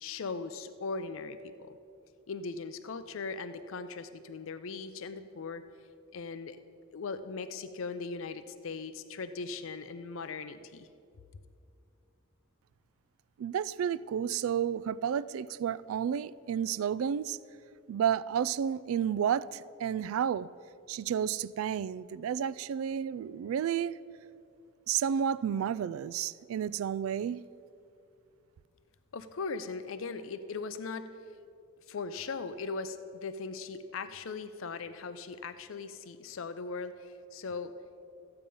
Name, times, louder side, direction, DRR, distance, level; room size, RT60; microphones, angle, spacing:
voice 1, 0.0-1.8 2.3-5.6 6.1-6.6 6.9-10.9 29.1-31.1 31.9-37.7, left 4 dB, 65° left, 0.5 m, -39 dB
voice 2, 13.4-17.4 17.9-20.5 20.9-23.9 24.9-27.4, right 8 dB, 75° right, 0.3 m, -31 dB
14.0 x 8.8 x 5.4 m
head